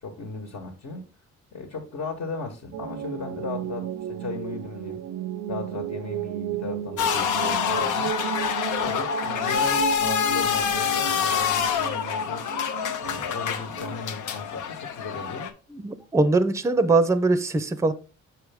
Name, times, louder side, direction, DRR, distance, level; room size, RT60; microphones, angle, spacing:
voice 1, 0.0-1.0 1.5-5.0 5.5-8.1 8.8-12.4 13.0-15.5, left 4 dB, 65° left, 1.3 m, -36 dB
sound 1, 2.7-14.0, right 11 dB, 65° right, 0.4 m, -34 dB
sound 2, 7.0-15.5, left 7 dB, 80° left, 0.7 m, -26 dB
voice 2, 15.8-17.9, right 3 dB, 10° right, 0.5 m, -21 dB
5.9 x 4.8 x 3.4 m
cardioid pair, 90°, 30 cm